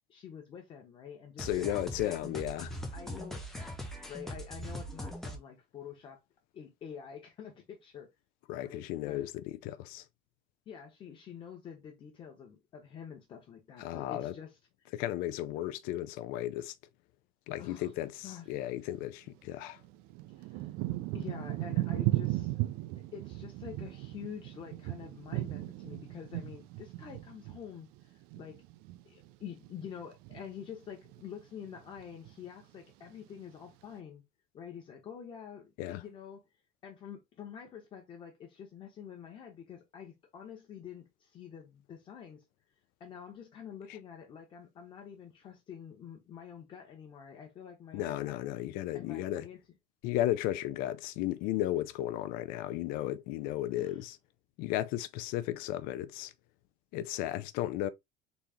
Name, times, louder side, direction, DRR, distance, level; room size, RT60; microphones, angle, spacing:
voice 1, 0.1-2.2 2.9-3.7 4.1-6.2 6.5-8.1 8.6-9.3 10.7-14.6 17.6-17.9 18.2-18.5 20.4-20.7 21.1-22.6 22.9-28.6 29.0-34.2 34.5-36.4 36.8-42.4 43.0-48.4 48.9-49.6 53.8-54.0, left 8 dB, 30° left, 1.0 m, -47 dB
voice 2, 1.4-2.7 8.5-10.0 13.8-14.3 14.9-16.7 17.5-19.8 35.8-36.0 47.9-49.5 50.0-54.2 54.6-56.3 56.9-57.9, left 14 dB, 65° left, 0.5 m, -34 dB
sound 1, 1.4-5.4, equal, ahead, 0.7 m, -41 dB
Thunder / Rain, 19.0-19.1 19.8-29.3 29.6-30.5 31.0-31.4 31.7-32.5 33.1-33.2, right 18 dB, 75° right, 0.4 m, -36 dB
4.1 x 2.9 x 3.5 m
cardioid pair, 175°, 16 cm